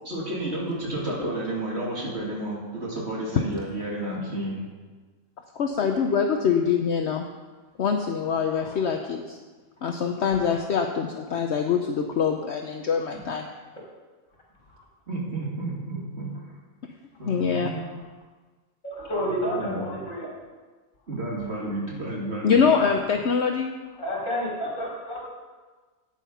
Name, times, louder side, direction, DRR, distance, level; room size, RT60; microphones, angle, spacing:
voice 1, 0.0-4.6 13.1-13.2 15.1-16.5 17.2-17.9 19.5-19.9 21.1-22.7, right 1 dB, 55° right, -4 dB, 3.1 m, -31 dB
voice 2, 5.6-7.3 7.8-9.4 9.8-13.5 17.3-17.7 22.4-23.7, left 6 dB, 60° left, 3 dB, 1.0 m, -24 dB
voice 3, 18.8-20.3 24.0-25.3, equal, 75° left, -4 dB, 3.9 m, -30 dB
11.0 x 9.1 x 5.7 m, 1.4 s
omnidirectional pair, 1.4 m